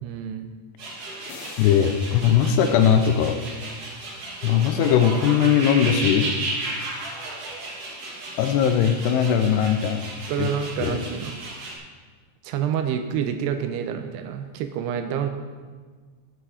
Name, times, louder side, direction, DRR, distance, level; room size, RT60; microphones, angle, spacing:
voice 1, 0.0-0.5 10.3-11.3 12.4-15.3, right 8 dB, 80° right, 7 dB, 2.6 m, -28 dB
sound 1, 0.8-11.7, right 2 dB, 45° right, 2.2 m, -34 dB
sound 2, 1.2-3.9, left 4 dB, 65° left, 2.6 m, -46 dB
voice 2, 1.6-3.4 4.4-6.3 8.4-10.0 10.4-10.5 10.8-11.0, left 8 dB, 80° left, 8 dB, 2.6 m, -19 dB
13.0 x 7.8 x 4.9 m, 1.5 s
omnidirectional pair, 5.0 m